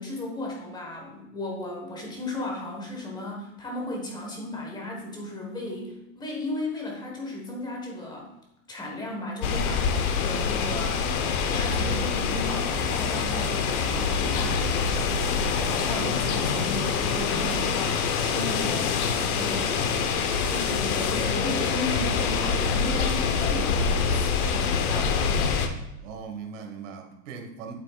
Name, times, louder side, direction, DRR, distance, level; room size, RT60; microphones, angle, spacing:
voice 1, 0.0-8.3 8.7-11.0 11.5-19.0 19.3-19.9 20.5-25.4, left 1 dB, 10° left, -1 dB, 1.4 m, -35 dB
sound 1, 9.4-25.7, left 6 dB, 75° left, 1.0 m, -25 dB
sound 2, 13.8-23.5, right 6 dB, 35° right, 0.4 m, -41 dB
voice 2, 26.0-27.7, right 5 dB, 60° right, 3 dB, 1.6 m, -39 dB
8.8 x 7.8 x 2.4 m, 0.88 s
supercardioid pair, 155°, 44 cm